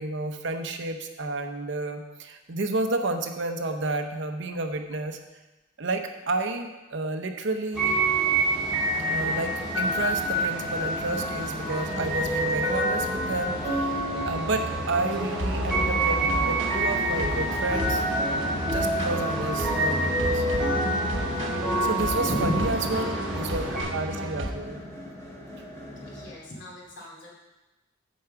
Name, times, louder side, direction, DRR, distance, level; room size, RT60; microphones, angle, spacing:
voice 1, 0.0-5.2 5.8-8.0 8.9-14.0 14.2-18.1 18.6-20.5 21.8-24.8, right 2 dB, 65° right, 6 dB, 0.8 m, -31 dB
sound 1, 7.7-23.8, right 1 dB, ahead, 2.4 m, -27 dB
sound 2, 8.5-26.3, left 1 dB, 15° left, 1.6 m, -41 dB
sound 3, 14.9-24.5, equal, 85° right, 1.1 m, -32 dB
voice 2, 22.2-23.3 26.0-27.3, equal, 65° left, -3 dB, 2.6 m, -34 dB
8.3 x 4.7 x 6.9 m, 1.1 s
head